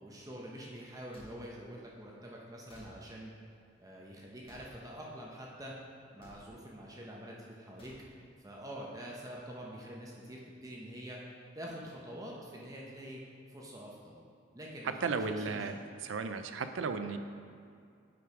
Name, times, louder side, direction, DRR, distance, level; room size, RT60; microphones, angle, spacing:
voice 1, 0.0-3.3 3.8-5.7 6.1-7.9 8.4-11.2 11.5-13.2 13.5-14.2 14.5-15.7, equal, 20° right, -3 dB, 0.8 m, -46 dB
sound 1, 1.1-1.3 2.7-2.9 4.4-4.7 6.2-6.4 7.8-8.0, left 1 dB, 30° left, 1.5 m, -55 dB
voice 2, 15.0-15.8 16.0-17.2, right 4 dB, 80° right, 9 dB, 0.5 m, -34 dB
8.4 x 4.7 x 4.8 m, 2.3 s
head